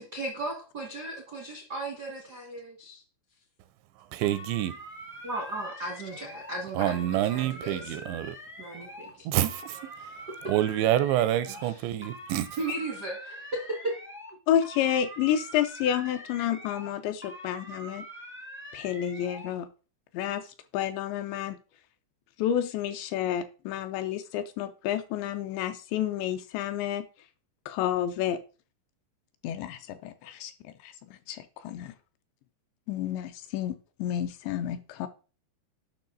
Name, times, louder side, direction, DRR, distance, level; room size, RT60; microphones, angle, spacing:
voice 1, 0.0-3.0 5.2-7.9 8.6-9.2 11.6-11.8 12.6-14.0, right 2 dB, 65° right, 1.0 m, -36 dB
voice 2, 4.1-4.7 6.7-8.4 9.3-9.9 10.5-12.6, right 13 dB, 85° right, 2.8 m, -27 dB
sound 1, 4.2-6.5 6.8-9.1 9.4-11.7 12.0-14.3 14.6-16.9 17.2-19.5, equal, 5° right, 0.3 m, -44 dB
voice 3, 14.5-18.0 18.7-19.7 20.1-20.4 20.7-21.6 22.4-27.1 27.7-28.4 29.4-30.5 30.8-31.9 32.9-35.1, left 10 dB, 80° left, 2.8 m, -30 dB
10.5 x 5.9 x 3.9 m
omnidirectional pair, 5.3 m